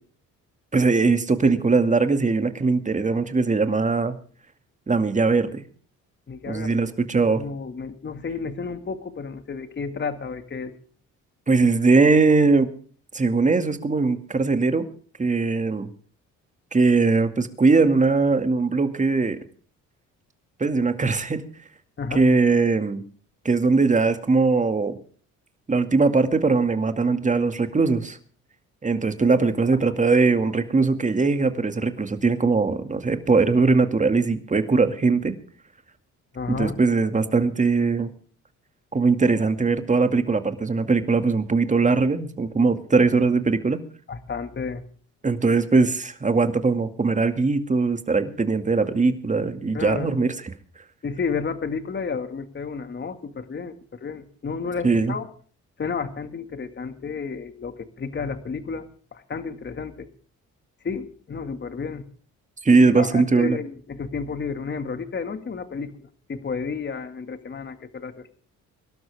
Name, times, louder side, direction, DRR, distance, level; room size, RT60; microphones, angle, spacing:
voice 1, 0.7-4.2 4.9-5.6 6.5-7.4 11.5-12.7 13.1-14.9 15.2-15.9 16.7-19.4 20.6-21.5 22.1-23.0 23.4-25.0 25.7-28.2 28.8-35.3 36.5-38.1 38.9-43.8 45.2-50.3 54.8-55.1 62.6-63.6, right 4 dB, 25° right, 8 dB, 2.2 m, -20 dB
voice 2, 6.3-6.8 7.4-10.8 22.0-22.3 29.9-30.0 36.3-36.8 44.1-44.8 49.7-50.2 51.0-55.3 55.8-60.1 60.8-62.0 62.7-68.3, left 5 dB, 35° left, 9 dB, 2.1 m, -32 dB
24.0 x 12.5 x 3.6 m, 0.42 s
cardioid pair, 90°, 30 cm